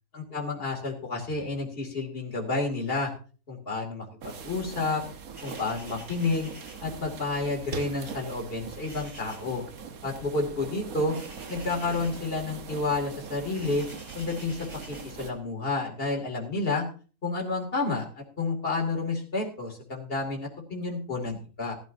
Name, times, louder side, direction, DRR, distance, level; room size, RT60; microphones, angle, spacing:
voice 1, 0.1-3.1 3.5-5.0 5.4-6.5 6.8-9.6 10.0-11.2 11.5-13.9 14.1-16.9 17.2-21.7, left 3 dB, 40° left, 1 dB, 2.8 m, -30 dB
sound 1, 4.2-15.3, right 6 dB, 80° right, 1.5 m, -42 dB
sound 2, 5.3-15.4, right 1 dB, 55° right, 5.5 m, -51 dB
17.5 x 12.0 x 2.7 m, 0.38 s
omnidirectional pair, 1.5 m